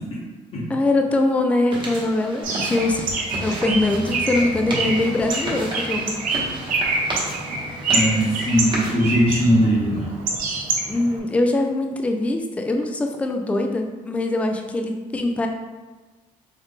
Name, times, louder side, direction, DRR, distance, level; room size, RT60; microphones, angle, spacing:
voice 1, 0.7-3.1 3.4-6.2 10.9-15.5, left 2 dB, 10° left, 4 dB, 0.3 m, -22 dB
sound 1, 1.7-8.9, right 1 dB, 30° right, 1.2 m, -32 dB
Bird, 2.4-11.2, right 3 dB, 70° right, 0.8 m, -26 dB
voice 2, 7.9-10.1, equal, 40° left, -6 dB, 1.0 m, -20 dB
3.9 x 2.5 x 3.5 m, 1.2 s
cardioid pair, 125°, 15 cm